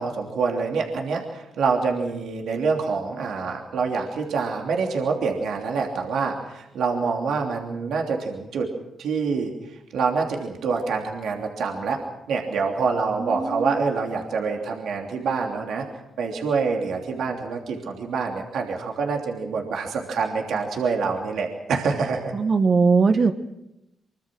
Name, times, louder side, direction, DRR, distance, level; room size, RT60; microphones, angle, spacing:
voice 1, 0.0-8.7 9.0-9.5 9.9-12.0 12.3-15.8 16.2-22.3, right 5 dB, 75° right, 1 dB, 3.0 m, -26 dB
voice 2, 13.2-13.9 22.3-23.3, right 4 dB, 50° right, 9 dB, 1.7 m, -20 dB
24.5 x 23.0 x 6.3 m, 0.90 s
supercardioid pair, 45°, 0 cm